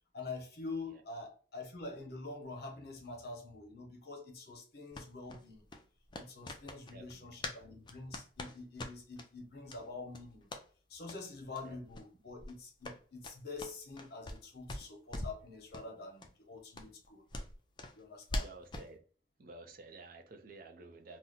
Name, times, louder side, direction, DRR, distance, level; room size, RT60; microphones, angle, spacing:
voice 1, 0.1-5.7 6.2-10.5 10.9-17.2 17.9-18.5, left 3 dB, 65° left, 0.9 m, -46 dB
sound 1, 4.9-7.6 7.9-9.3 9.7-9.8 10.1-10.6 11.0-11.2 11.5-11.6 11.9-12.1 12.4-14.4 14.7-15.4 15.7-15.9 16.2-16.3 16.7-18.9, left 1 dB, 25° left, 0.4 m, -43 dB
voice 2, 6.9-7.5 11.6-11.8 18.3-19.0 19.4-21.2, right 3 dB, 55° right, 0.5 m, -52 dB
2.7 x 2.1 x 3.7 m
head